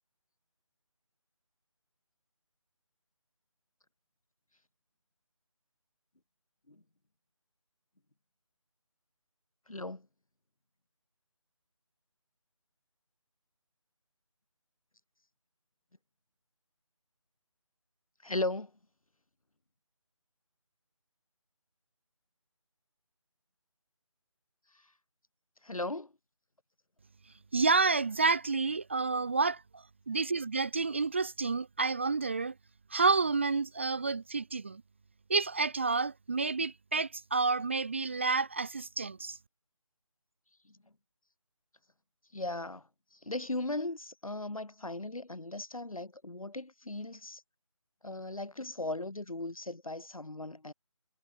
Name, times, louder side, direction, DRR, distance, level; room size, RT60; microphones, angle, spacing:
voice 1, 9.7-10.1 18.2-18.7 25.6-26.1 40.6-40.8 42.3-47.4 48.0-50.7, left 2 dB, 85° left, 4.1 m, -37 dB
voice 2, 27.5-32.5 32.9-34.8 35.3-39.4, right 4 dB, 20° right, 0.6 m, -29 dB
figure-of-eight pair, 165°, 17 cm